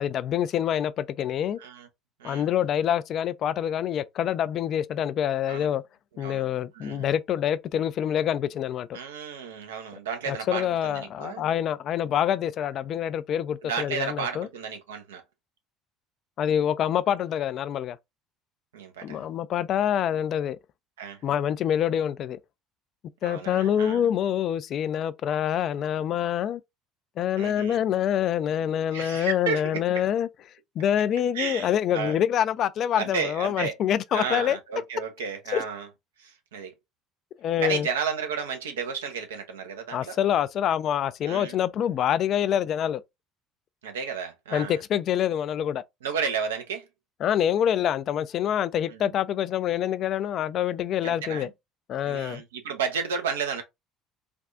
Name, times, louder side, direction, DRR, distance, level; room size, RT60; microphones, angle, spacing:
voice 1, 0.0-1.6 2.2-5.8 6.2-9.0 10.3-14.5 16.4-18.0 19.0-20.6 21.2-22.4 23.2-26.6 27.2-30.3 30.8-34.6 35.5-35.6 37.4-37.9 39.9-43.0 44.5-45.8 47.2-51.5 51.9-52.4, left 10 dB, 50° left, 0.3 m, -26 dB
voice 2, 6.7-7.1 8.9-11.4 13.6-15.2 18.7-19.3 21.0-21.2 23.2-24.0 27.4-27.8 28.9-29.8 31.3-32.2 33.0-33.7 34.1-35.9 36.2-36.7 37.6-40.2 41.3-41.6 43.8-44.8 46.0-46.8 48.9-49.1 51.0-51.5 52.0-53.6, right 6 dB, 80° right, 0.7 m, -32 dB
3.4 x 2.4 x 2.5 m
hypercardioid pair, 60°, 0 cm